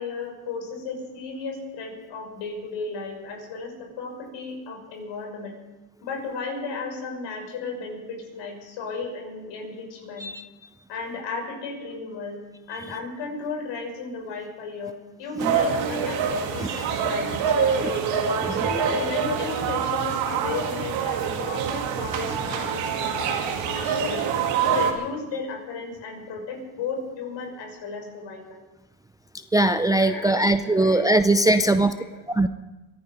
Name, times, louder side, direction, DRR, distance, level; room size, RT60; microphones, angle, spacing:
voice 1, 0.0-5.5 6.0-10.3 10.9-12.4 12.7-18.1 18.5-28.6 30.0-32.2, left 4 dB, 65° left, 1 dB, 6.3 m, -35 dB
sound 1, 15.4-24.9, right 6 dB, 70° right, 2.4 m, -25 dB
voice 2, 29.5-31.9 32.4-32.5, right 2 dB, 10° right, 10 dB, 0.5 m, -20 dB
24.0 x 10.0 x 5.2 m, 1.1 s
supercardioid pair, 100°, 46 cm